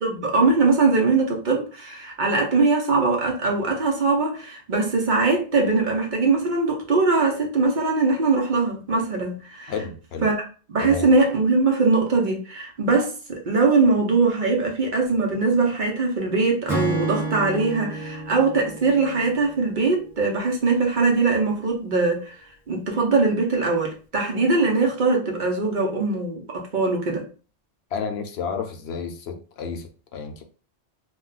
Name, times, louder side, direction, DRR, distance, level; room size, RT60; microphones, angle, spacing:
voice 1, 0.0-9.7 10.2-10.4 10.7-22.4 22.7-27.2, right 3 dB, 50° right, 0.8 m, -21 dB
voice 2, 9.7-10.3 10.8-11.1 27.9-30.4, left 5 dB, 70° left, 0.8 m, -31 dB
Acoustic guitar / Strum, 16.7-20.1, right 2 dB, 5° right, 0.5 m, -30 dB
2.3 x 2.2 x 3.8 m
omnidirectional pair, 1.1 m